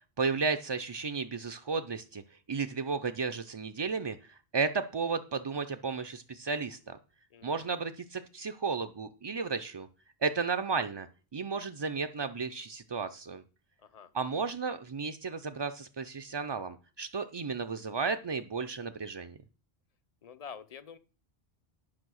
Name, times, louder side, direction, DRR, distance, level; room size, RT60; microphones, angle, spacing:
voice 1, 0.2-2.2 2.5-7.0 7.4-9.9 10.2-11.1 11.3-13.4 14.1-19.3, right 4 dB, 40° right, 9 dB, 0.4 m, -33 dB
voice 2, 7.3-7.7 13.8-14.1 20.2-21.0, left 7 dB, 40° left, 15 dB, 0.7 m, -47 dB
11.0 x 5.6 x 6.2 m, 0.36 s
omnidirectional pair, 1.1 m